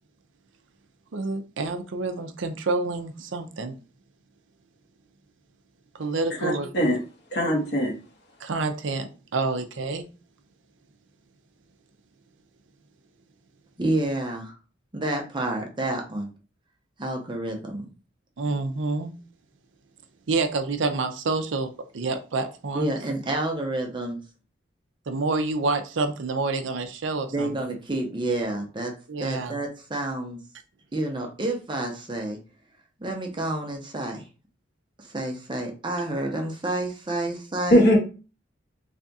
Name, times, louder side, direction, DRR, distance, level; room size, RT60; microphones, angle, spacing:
voice 1, 1.1-3.7 6.0-6.7 8.4-10.0 18.4-19.1 20.3-22.9 25.1-27.7 29.1-29.6, right 3 dB, 75° right, 0.6 m, -28 dB
voice 2, 6.4-7.0 7.3-7.9 37.7-38.0, equal, 60° left, 1.3 m, -20 dB
voice 3, 13.8-14.5 14.9-16.3 17.0-17.9 22.7-24.2 27.3-28.9 29.2-30.4 30.9-32.4 33.0-34.3 35.0-37.9, right 2 dB, 25° right, 0.7 m, -29 dB
3.4 x 2.4 x 4.0 m
head